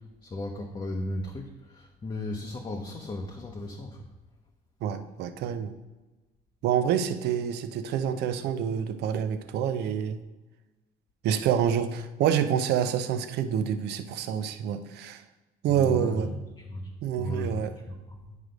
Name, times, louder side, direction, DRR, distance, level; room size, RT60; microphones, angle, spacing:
voice 1, 0.3-1.5 1.8-4.0 15.7-16.2 16.7-16.9 17.2-17.6, left 2 dB, 30° left, 0 dB, 0.8 m, -35 dB
voice 2, 4.8-5.7 6.6-10.2 11.2-15.2 15.6-16.3 17.0-17.7, right 8 dB, 75° right, 9 dB, 0.6 m, -27 dB
9.5 x 3.3 x 5.1 m, 1.1 s
cardioid pair, 110°, 17 cm